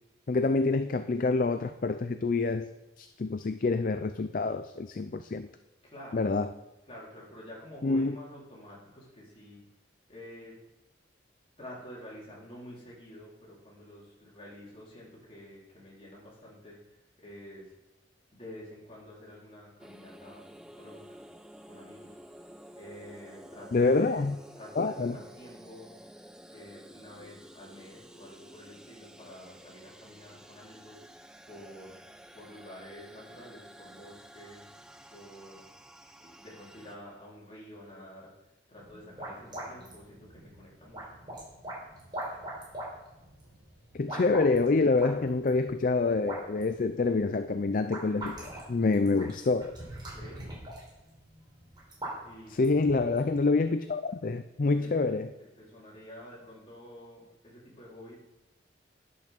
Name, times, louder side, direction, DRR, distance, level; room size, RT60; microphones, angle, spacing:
voice 1, 0.3-2.7 3.0-5.5 6.1-6.5 7.8-8.2 23.7-24.4 24.8-25.2 43.9-49.8 52.5-55.3, left 3 dB, 45° left, 10 dB, 0.4 m, -27 dB
voice 2, 5.8-6.3 6.9-9.6 10.1-10.6 11.6-17.8 18.3-21.2 21.7-22.2 22.8-26.0 26.5-31.0 31.5-32.1 32.3-34.7 35.1-35.7 36.2-38.4 38.7-41.2 50.1-50.5 52.2-52.9 54.8-58.2, equal, 30° left, -5 dB, 4.0 m, -49 dB
sound 1, 19.8-37.0, equal, 5° right, 0.7 m, -52 dB
sound 2, 38.8-53.3, right 1 dB, 25° right, 4.5 m, -43 dB
11.0 x 7.0 x 6.5 m, 0.97 s
head